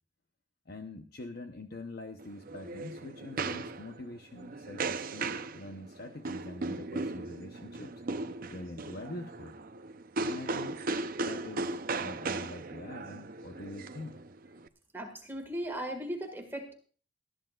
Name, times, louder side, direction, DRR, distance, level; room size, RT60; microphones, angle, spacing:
voice 1, 0.7-7.9 8.5-9.5 10.2-10.8 11.2-14.2, left 2 dB, 55° left, 5 dB, 0.8 m, -44 dB
sound 1, 2.2-14.7, right 3 dB, 50° right, 0.6 m, -37 dB
voice 2, 14.9-16.7, right 1 dB, 10° right, 3 dB, 1.8 m, -37 dB
19.5 x 13.0 x 2.4 m, 0.41 s
head